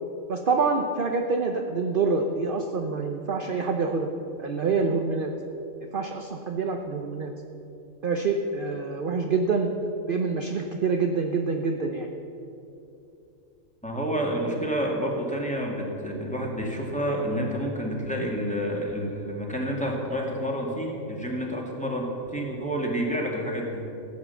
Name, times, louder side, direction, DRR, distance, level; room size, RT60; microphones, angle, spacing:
voice 1, 0.3-4.1 4.4-5.3 5.9-7.3 8.0-9.7 10.1-12.1, right 4 dB, 45° right, 3 dB, 0.9 m, -26 dB
voice 2, 13.8-23.9, equal, 5° left, -2 dB, 2.1 m, -29 dB
15.5 x 8.5 x 7.0 m, 2.7 s
omnidirectional pair, 1.4 m